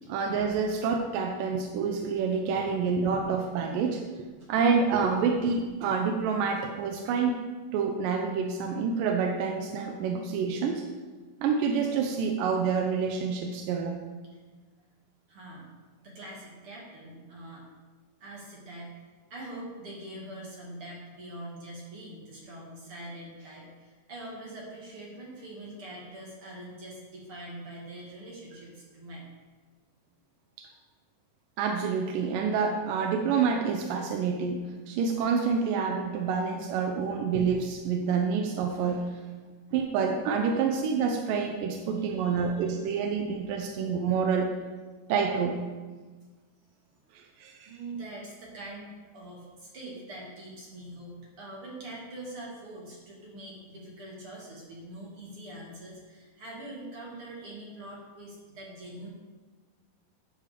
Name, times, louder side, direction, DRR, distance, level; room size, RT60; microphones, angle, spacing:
voice 1, 0.1-4.0 4.5-7.4 7.7-10.8 11.4-14.0 30.6-30.7 31.6-39.1 39.7-44.5 45.1-45.6 47.4-47.7, right 5 dB, 90° right, 3 dB, 2.4 m, -27 dB
voice 2, 15.3-15.7 16.0-17.6 18.2-19.0 19.3-29.3 35.4-35.5 37.0-37.1 42.0-42.7 47.7-59.1, right 1 dB, 45° right, -4 dB, 2.6 m, -43 dB
10.5 x 5.0 x 6.6 m, 1.4 s
omnidirectional pair, 3.8 m